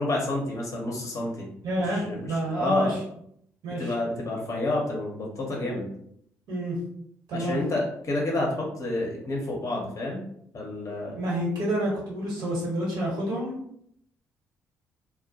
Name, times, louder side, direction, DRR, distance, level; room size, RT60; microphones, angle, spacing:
voice 1, 0.0-1.5 1.8-3.0 3.8-5.9 7.3-10.2 10.5-11.2, left 2 dB, 40° left, -1 dB, 0.7 m, -29 dB
voice 2, 1.6-3.0 3.6-3.9 6.5-6.8 7.3-7.6 11.1-13.5, right 1 dB, 60° right, -4 dB, 1.1 m, -28 dB
2.1 x 2.1 x 2.7 m, 0.70 s
figure-of-eight pair, 45°, 8 cm